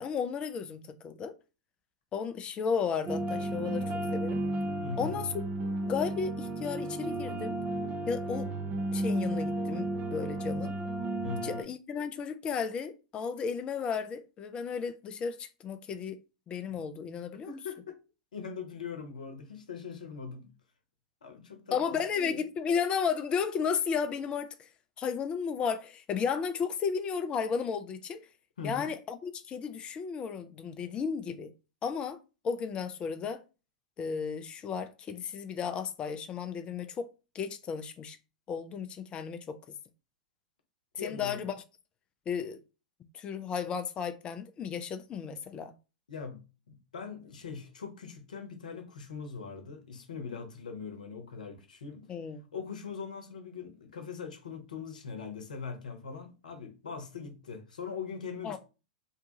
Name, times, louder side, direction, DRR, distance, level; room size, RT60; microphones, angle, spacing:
voice 1, 0.0-1.3 2.1-4.4 5.0-5.3 5.9-7.6 8.1-8.5 8.9-10.8 11.4-16.2 16.5-17.5 21.7-24.7 25.0-28.2 28.6-31.5 31.8-32.2 32.4-33.4 34.0-37.1 37.3-38.2 38.5-39.6 40.9-41.6 42.3-42.6 43.1-45.7 52.1-52.4 58.4-58.6, left 6 dB, 25° left, 0.4 m, -34 dB
sound 1, 3.1-11.6, right 1 dB, 30° right, 0.5 m, -33 dB
voice 2, 4.8-5.2 11.2-11.6 16.7-16.8 17.5-17.9 18.3-20.5 21.2-22.4 28.6-28.9 41.0-41.4 46.1-46.4 46.9-52.1 52.5-58.6, left 5 dB, 70° left, 0.8 m, -41 dB
2.6 x 2.3 x 2.8 m
figure-of-eight pair, 100°, 4 cm